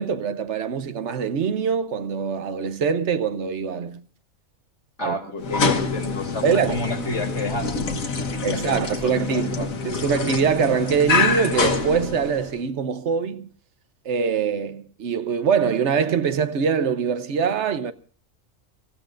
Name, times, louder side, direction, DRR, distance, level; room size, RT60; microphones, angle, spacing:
voice 1, 0.0-4.0 5.0-5.2 6.4-6.8 8.4-13.5 14.0-17.9, right 6 dB, 60° right, 1.2 m, -23 dB
voice 2, 5.0-8.0 8.5-9.7, left 2 dB, 55° left, 3.5 m, -30 dB
sound 1, 5.4-12.6, left 4 dB, 85° left, 1.8 m, -26 dB
26.5 x 14.5 x 2.5 m
omnidirectional pair, 1.4 m